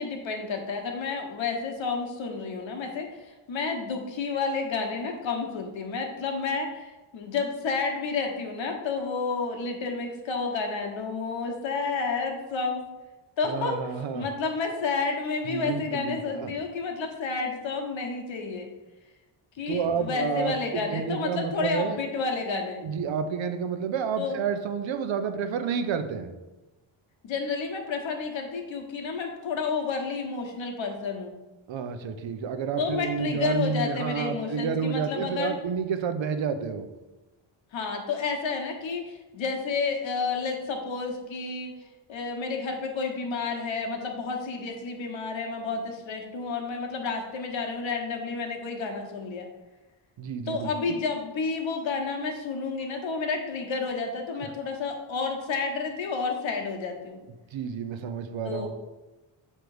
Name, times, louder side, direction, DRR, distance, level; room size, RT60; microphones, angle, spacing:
voice 1, 0.0-12.8 13.4-13.8 14.1-18.7 19.6-22.8 24.2-24.4 27.2-31.3 32.8-35.6 37.7-41.7 42.1-49.5 50.5-57.2 58.4-58.7, left 4 dB, 65° left, 2 dB, 1.3 m, -30 dB
voice 2, 13.4-14.3 15.4-16.5 19.7-22.0 22.8-26.3 31.7-36.8 50.2-50.9 57.5-58.7, right 6 dB, 65° right, 8 dB, 0.7 m, -30 dB
7.8 x 3.3 x 4.8 m, 1.1 s
wide cardioid pair, 135°, 48 cm